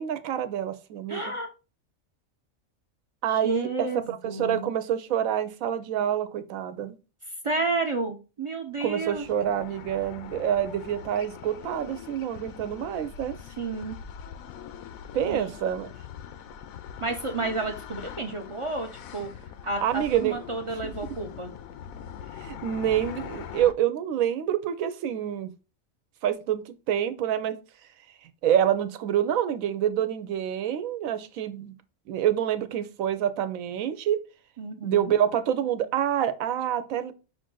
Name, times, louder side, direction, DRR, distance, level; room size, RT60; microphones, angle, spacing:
voice 1, 0.0-1.3 3.2-7.0 8.8-13.4 15.1-15.9 19.8-20.4 20.8-20.9 22.4-25.5 26.2-27.6 28.4-31.7 32.1-34.2 34.8-37.1, right 10 dB, 85° right, 11 dB, 1.0 m, -27 dB
voice 2, 1.1-1.5 3.3-4.7 7.4-9.3 13.5-14.0 15.3-15.5 17.0-21.5 34.6-35.2, right 3 dB, 50° right, 4 dB, 0.3 m, -31 dB
sound 1, 8.8-23.7, left 8 dB, 90° left, 1.0 m, -42 dB
5.6 x 2.5 x 3.8 m, 0.32 s
omnidirectional pair, 1.4 m